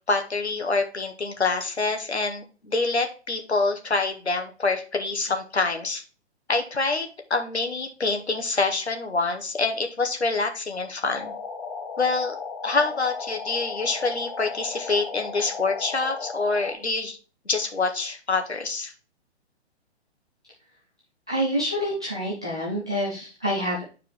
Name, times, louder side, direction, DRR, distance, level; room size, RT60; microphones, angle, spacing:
voice 1, 0.1-6.0 6.5-11.3 12.0-12.3 12.6-17.2 17.4-18.9, left 3 dB, 75° left, 5 dB, 1.8 m, -26 dB
sound 1, 11.0-16.7, left 5 dB, 20° left, 2.0 m, -36 dB
voice 2, 21.3-23.8, equal, 5° right, -9 dB, 0.3 m, -27 dB
9.5 x 4.7 x 3.3 m, 0.35 s
figure-of-eight pair, 125°, 33 cm